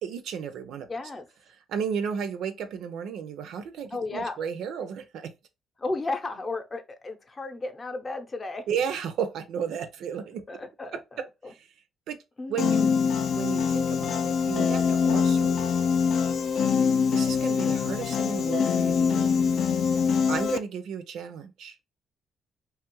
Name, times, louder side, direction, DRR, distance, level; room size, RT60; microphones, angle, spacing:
voice 1, 0.0-0.9 1.7-5.3 8.7-10.5 10.9-11.7 12.1-12.2 12.5-12.9 13.4-15.6 17.1-19.3 20.3-21.8, right 7 dB, 80° right, 0.4 m, -33 dB
voice 2, 0.9-1.2 3.9-4.4 5.8-8.6 10.5-11.5 12.4-12.6 19.9-20.1, left 2 dB, 30° left, 0.6 m, -34 dB
Piano, 12.6-20.6, left 6 dB, 65° left, 0.3 m, -24 dB
2.9 x 2.4 x 3.0 m
cardioid pair, 90°, 0 cm